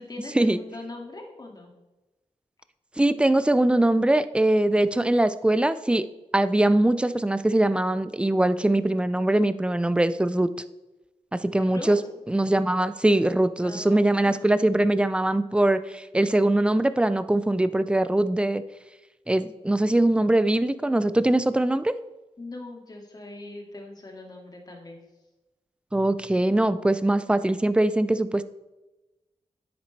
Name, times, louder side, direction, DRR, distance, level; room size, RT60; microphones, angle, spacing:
voice 1, 0.0-1.7 11.5-12.0 13.6-14.6 22.4-25.0, left 2 dB, 35° left, 1 dB, 2.2 m, -41 dB
voice 2, 3.0-6.1 6.3-10.5 11.3-12.0 12.3-18.6 19.3-22.0 25.9-28.4, right 1 dB, 10° right, 13 dB, 0.4 m, -22 dB
10.0 x 8.2 x 3.3 m, 1.1 s
wide cardioid pair, 90°, 11 cm